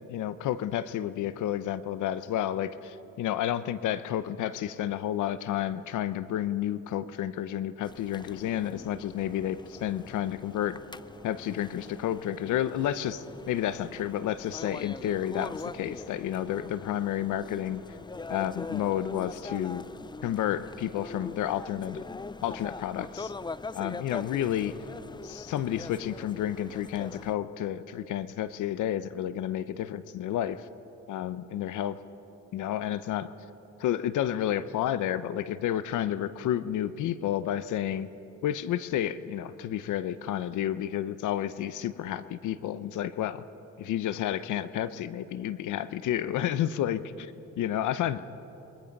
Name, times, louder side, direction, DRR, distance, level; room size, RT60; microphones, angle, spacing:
voice 1, 0.1-10.8 11.2-17.8 18.3-19.8 20.2-22.0 22.4-23.3 23.7-24.7 25.2-30.7 31.1-31.9 32.5-33.3 33.8-38.1 38.4-43.4 43.8-48.2, left 11 dB, 80° left, 14 dB, 0.9 m, -31 dB
sound 1, 7.8-27.3, left 4 dB, 15° left, 0.5 m, -42 dB
27.5 x 23.0 x 5.4 m, 2.9 s
cardioid pair, 90°, 30 cm